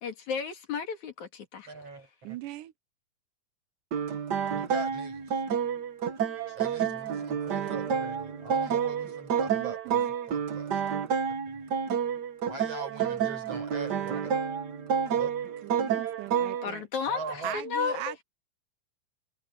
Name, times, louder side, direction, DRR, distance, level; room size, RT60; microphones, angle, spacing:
voice 1, 0.0-2.1 6.5-6.6 16.6-18.1, left 5 dB, 65° left, 3.7 m, -34 dB
voice 2, 1.7-2.4 4.5-5.4 6.5-10.0 10.3-10.8 11.5-11.6 12.5-14.3 15.2-15.3 17.1-17.6, right 3 dB, 50° right, 6.8 m, -41 dB
voice 3, 2.2-2.7 6.8-6.9 7.6-7.8 9.5-10.1 12.9-13.3 15.6-16.8 17.4-18.2, right 15 dB, 85° right, 2.3 m, -40 dB
sound 1, 3.9-16.7, right 7 dB, 65° right, 1.0 m, -29 dB
omnidirectional pair, 3.6 m